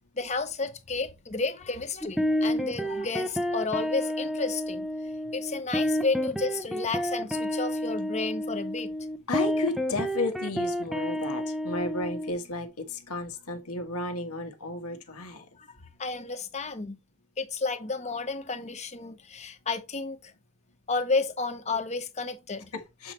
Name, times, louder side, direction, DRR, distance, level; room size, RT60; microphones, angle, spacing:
voice 1, 0.2-4.9 5.3-8.9 15.6-15.7 16.0-17.0 17.4-20.2 20.9-22.7, left 3 dB, 30° left, 0.9 m, -31 dB
sound 1, 2.0-12.3, equal, ahead, 0.6 m, -30 dB
voice 2, 9.3-15.5 22.7-23.1, left 2 dB, 90° left, 1.6 m, -33 dB
7.7 x 4.8 x 3.2 m
head